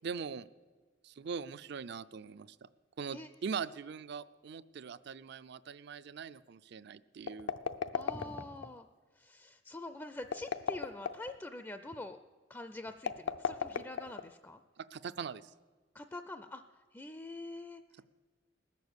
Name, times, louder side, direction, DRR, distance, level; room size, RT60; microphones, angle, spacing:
voice 1, 0.0-0.5 1.0-2.7 3.0-7.5 14.8-15.5, right 6 dB, 60° right, 15 dB, 0.4 m, -41 dB
sound 1, 7.2-8.7 10.2-11.4 13.0-14.5, left 7 dB, 80° left, 0.6 m, -35 dB
voice 2, 7.9-8.9 9.2-12.2 12.5-14.6 15.9-16.6 16.9-17.8, left 2 dB, 10° left, 9 dB, 0.4 m, -45 dB
19.5 x 6.9 x 8.0 m, 1.3 s
head